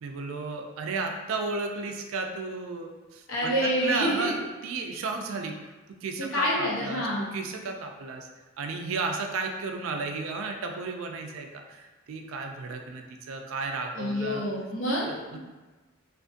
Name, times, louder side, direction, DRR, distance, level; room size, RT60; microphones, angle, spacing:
voice 1, 0.0-5.6 6.0-8.3 8.6-14.4 15.1-15.4, right 4 dB, 70° right, 4 dB, 0.3 m, -33 dB
voice 2, 3.3-4.4 6.2-7.3 13.9-15.4, equal, 70° left, -6 dB, 0.7 m, -28 dB
2.5 x 2.4 x 2.4 m, 1.2 s
head